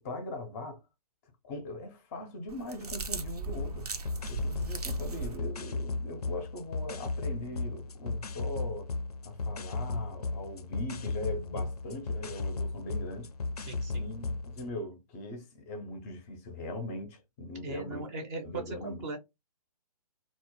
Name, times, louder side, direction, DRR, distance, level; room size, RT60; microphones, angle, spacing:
voice 1, 0.0-0.8 1.4-3.9 4.3-8.9 9.2-13.3 13.9-18.1 18.4-19.2, left 1 dB, 25° left, 0.5 m, -40 dB
sound 1, 2.5-5.4, right 4 dB, 85° right, 0.6 m, -37 dB
sound 2, 3.6-14.7, left 3 dB, 85° left, 0.4 m, -35 dB
voice 2, 13.6-14.1 17.6-19.2, right 3 dB, 25° right, 0.5 m, -39 dB
2.0 x 2.0 x 3.0 m
figure-of-eight pair, 135°, 19 cm